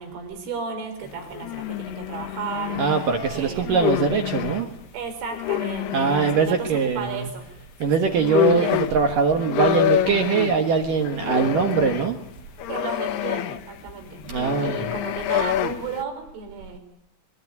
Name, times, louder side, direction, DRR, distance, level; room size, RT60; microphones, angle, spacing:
voice 1, 0.0-4.0 4.9-7.5 7.8-7.9 8.5-8.8 12.7-16.8, right 5 dB, 85° right, 6 dB, 6.8 m, -34 dB
sound 1, 1.0-4.6 5.3-6.5 7.8-7.9 8.1-16.0, left 13 dB, 70° left, 2.8 m, -27 dB
voice 2, 2.8-4.7 5.9-7.3 7.8-12.2 14.3-14.9, right 5 dB, 60° right, 5 dB, 2.4 m, -22 dB
24.0 x 23.5 x 9.6 m, 0.81 s
omnidirectional pair, 5.5 m